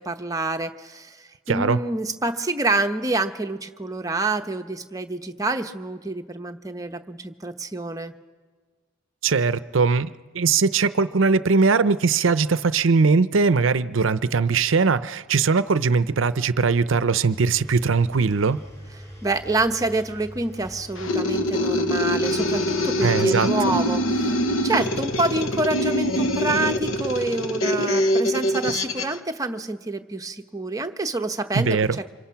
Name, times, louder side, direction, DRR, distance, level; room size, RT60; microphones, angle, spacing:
voice 1, 0.0-8.1 19.2-32.2, right 2 dB, 15° right, 6 dB, 0.9 m, -27 dB
voice 2, 1.5-1.8 9.2-18.6 23.0-23.5 31.5-32.0, right 4 dB, 65° right, 14 dB, 0.6 m, -20 dB
Engine, 17.3-27.3, equal, 15° left, 4.9 m, -42 dB
sound 1, 21.0-29.2, equal, 70° left, 1.1 m, -24 dB
28.5 x 26.0 x 5.8 m, 1.5 s
head